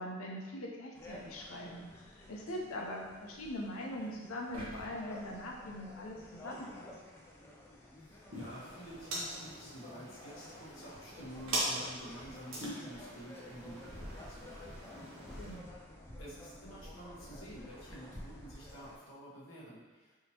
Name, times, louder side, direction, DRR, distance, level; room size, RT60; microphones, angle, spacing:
voice 1, 0.0-6.9 15.1-15.7, left 1 dB, 80° left, -1 dB, 0.6 m, -42 dB
sound 1, 0.9-19.0, left 1 dB, 10° left, 0.3 m, -51 dB
sound 2, 4.5-6.7 7.2-7.3, equal, 85° right, 1.2 m, -51 dB
voice 2, 7.9-15.4 16.2-20.2, right 1 dB, 60° left, -7 dB, 1.0 m, -50 dB
sound 3, 8.3-15.6, right 1 dB, 70° right, 0.9 m, -42 dB
3.5 x 2.8 x 2.8 m, 1.2 s
head